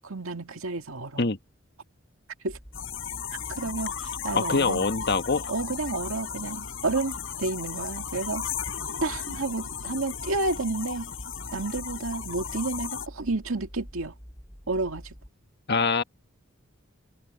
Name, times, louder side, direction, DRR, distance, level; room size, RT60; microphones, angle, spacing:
voice 1, 0.0-1.2 2.4-2.6 3.5-4.9 5.5-8.5 9.0-11.1 11.5-14.1 14.7-15.1, right 3 dB, 80° right, 2.1 m, -31 dB
sound 1, 2.5-15.3, equal, 15° left, 4.9 m, -46 dB
sound 2, 2.7-13.1, left 7 dB, 70° left, 7.4 m, -35 dB
voice 2, 4.3-5.5 15.7-16.0, left 4 dB, 50° left, 1.5 m, -24 dB
head